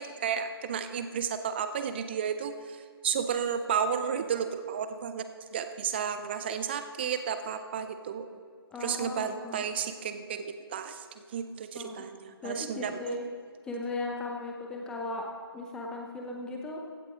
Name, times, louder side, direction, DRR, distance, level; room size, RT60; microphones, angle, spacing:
voice 1, 0.0-5.3 5.5-8.4 8.8-13.0, right 7 dB, 25° right, 9 dB, 0.5 m, -32 dB
voice 2, 8.7-9.6 11.8-12.0 12.4-13.2 13.7-15.2 15.5-16.8, left 2 dB, 5° left, 0 dB, 0.8 m, -37 dB
15.5 x 8.1 x 3.7 m, 2.1 s
figure-of-eight pair, 155°, 13 cm